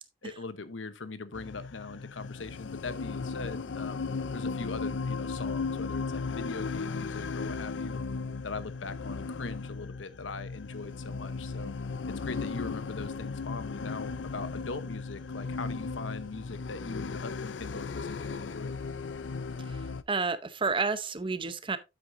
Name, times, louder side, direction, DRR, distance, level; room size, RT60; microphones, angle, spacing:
voice 1, 0.2-4.0 4.3-8.0 8.4-11.7 12.2-18.7, left 3 dB, 90° left, 1.0 m, -41 dB
sound 1, 1.3-20.0, left 4 dB, 70° left, 0.5 m, -36 dB
voice 2, 20.1-21.8, right 4 dB, 25° right, 0.8 m, -30 dB
8.9 x 8.0 x 2.6 m
head